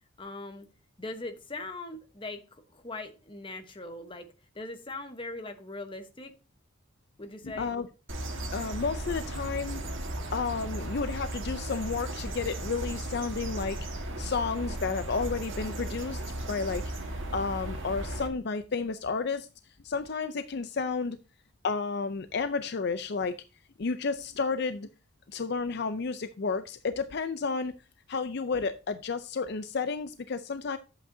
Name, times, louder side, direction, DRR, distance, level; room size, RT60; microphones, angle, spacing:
voice 1, 0.2-0.7 1.0-6.3 7.2-7.7, left 2 dB, 25° left, 1.0 m, -40 dB
voice 2, 7.4-7.9 8.5-9.8 10.3-19.5 19.8-21.2 21.6-23.4 23.8-24.9 25.3-27.7 28.1-30.8, left 4 dB, 50° left, 0.5 m, -32 dB
sound 1, 8.1-18.3, right 1 dB, 65° right, 1.6 m, -36 dB
11.0 x 8.2 x 2.7 m
head